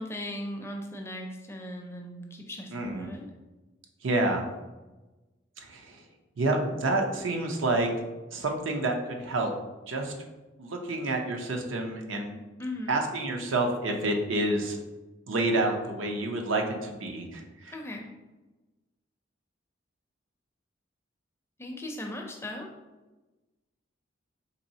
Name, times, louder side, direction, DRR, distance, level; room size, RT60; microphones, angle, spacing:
voice 1, 0.0-3.3 12.6-13.0 17.7-18.1 21.6-22.7, left 1 dB, 15° left, 1 dB, 0.4 m, -38 dB
voice 2, 2.7-3.1 4.0-4.4 5.6-6.0 6.4-7.9 8.3-9.5 9.9-10.1 10.6-12.4 12.9-14.8 15.3-17.7, right 2 dB, 85° right, 2 dB, 0.6 m, -28 dB
4.1 x 3.1 x 2.7 m, 1.1 s
head